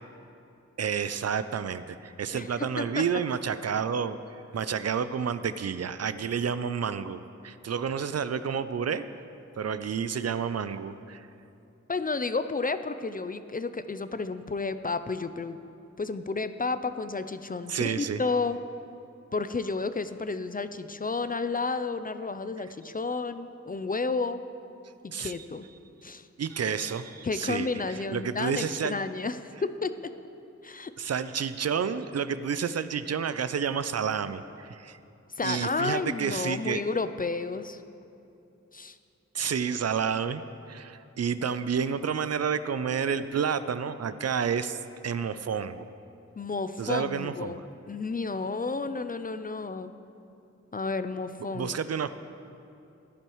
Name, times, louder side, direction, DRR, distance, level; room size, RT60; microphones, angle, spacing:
voice 1, 0.8-4.2 4.5-9.1 9.6-11.3 17.7-18.2 25.1-25.4 26.4-28.9 31.0-35.0 35.4-36.8 39.3-40.4 40.7-45.9 46.8-47.6 51.5-52.1, right 7 dB, 60° right, 13 dB, 0.4 m, -30 dB
voice 2, 2.3-3.1 11.9-15.6 16.0-18.6 19.3-24.4 25.0-25.7 26.0-26.3 27.2-30.1 30.6-30.9 35.4-37.8 38.7-39.0 46.4-47.6 47.9-49.9 50.7-51.8, left 4 dB, 30° left, 11 dB, 0.4 m, -31 dB
14.5 x 11.0 x 3.1 m, 2.7 s
wide cardioid pair, 65°, 29 cm